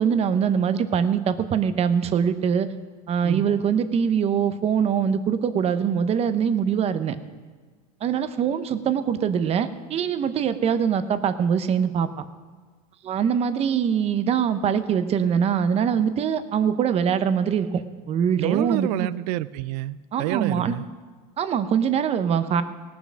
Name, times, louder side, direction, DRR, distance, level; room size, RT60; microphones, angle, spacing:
voice 1, 0.0-2.7 3.1-7.1 8.0-12.2 13.0-17.8 18.1-19.1 20.1-20.7 21.4-22.6, right 7 dB, 30° right, 12 dB, 0.8 m, -23 dB
voice 2, 18.4-20.9, right 16 dB, 70° right, 17 dB, 0.4 m, -28 dB
17.5 x 7.0 x 6.3 m, 1.4 s
supercardioid pair, 130°, 21 cm